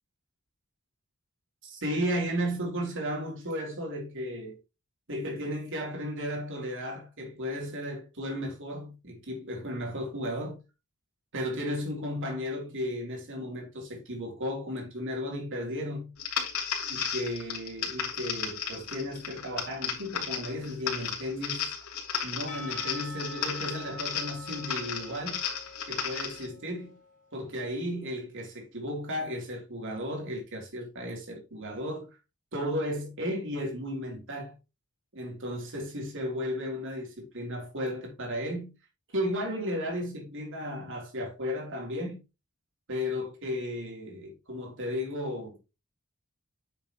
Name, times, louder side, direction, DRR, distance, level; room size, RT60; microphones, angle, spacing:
voice 1, 1.6-4.6 5.1-10.6 11.3-16.1 16.9-21.7 22.2-25.4 25.9-26.9 27.3-32.1 32.5-34.5 35.1-38.7 39.1-42.2 42.9-45.7, equal, 60° right, 3.5 m, -34 dB
sound 1, 16.2-26.5, left 7 dB, 90° left, 3.0 m, -34 dB
Percussion, 22.5-27.3, left 1 dB, 35° left, 2.7 m, -45 dB
9.7 x 6.7 x 3.1 m
head